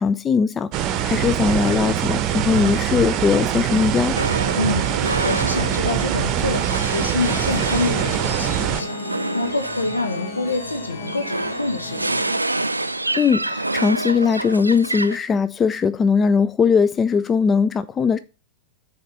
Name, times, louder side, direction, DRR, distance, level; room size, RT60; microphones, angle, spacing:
voice 1, 0.0-4.2 13.2-18.2, left 5 dB, 20° left, 0.4 m, -20 dB
sound 1, 0.7-8.8, right 10 dB, 40° right, 0.8 m, -23 dB
sound 2, 4.2-15.2, right 2 dB, 85° right, 0.3 m, -28 dB
voice 2, 4.6-12.3, left 2 dB, 80° left, 1.1 m, -27 dB
sound 3, 7.2-12.4, left 5 dB, 50° left, 1.3 m, -36 dB
6.5 x 4.2 x 5.4 m
figure-of-eight pair, 90°, 0 cm